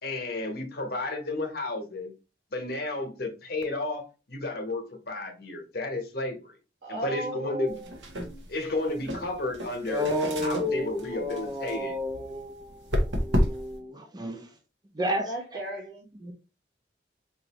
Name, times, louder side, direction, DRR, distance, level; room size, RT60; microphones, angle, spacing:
voice 1, 0.0-2.1 2.5-6.5 6.9-7.8 8.5-10.1 10.4-12.0, left 2 dB, 55° left, 1.0 m, -32 dB
voice 2, 6.8-8.4 15.2-16.1, right 1 dB, 60° right, 1.2 m, -36 dB
sound 1, 7.7-13.8, equal, 90° right, 1.0 m, -32 dB
voice 3, 9.9-14.5 14.9-15.3 16.2-16.3, left 1 dB, 25° right, 0.5 m, -31 dB
4.5 x 2.6 x 2.9 m
head